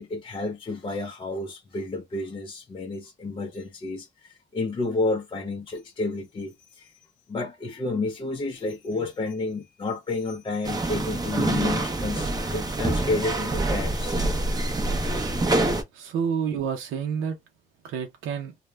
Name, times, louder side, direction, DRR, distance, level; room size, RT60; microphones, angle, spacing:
voice 1, 0.0-6.9 7.3-14.2 16.5-16.6, left 2 dB, 25° left, 0.5 m, -31 dB
sound 1, 10.6-15.8, right 2 dB, 20° right, 0.6 m, -26 dB
voice 2, 15.9-17.4 17.8-18.5, right 7 dB, 90° right, 0.6 m, -29 dB
2.1 x 2.0 x 3.2 m
cardioid pair, 90°, 20 cm